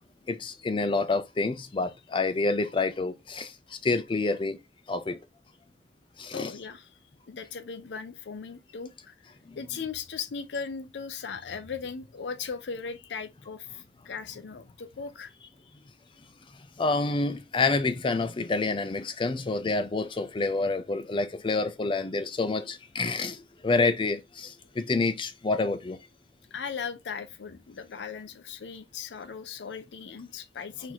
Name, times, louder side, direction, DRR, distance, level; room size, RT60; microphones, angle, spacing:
voice 1, 0.3-4.6 4.9-5.2 6.2-6.5 9.5-9.6 16.8-26.0, left 3 dB, 30° left, 0.4 m, -28 dB
voice 2, 6.3-6.9 7.3-9.1 9.6-15.3 26.5-30.9, left 6 dB, 80° left, 0.5 m, -38 dB
4.5 x 2.6 x 3.9 m
head